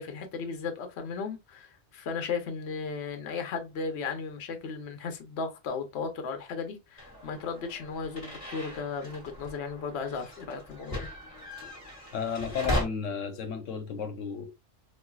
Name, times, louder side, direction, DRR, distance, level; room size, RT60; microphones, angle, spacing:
voice 1, 0.0-11.1, left 5 dB, 60° left, 0.9 m, -35 dB
sound 1, 7.0-12.8, equal, 30° left, 1.3 m, -38 dB
voice 2, 12.1-14.5, left 6 dB, 85° left, 1.0 m, -33 dB
4.3 x 2.3 x 2.2 m
omnidirectional pair, 1.3 m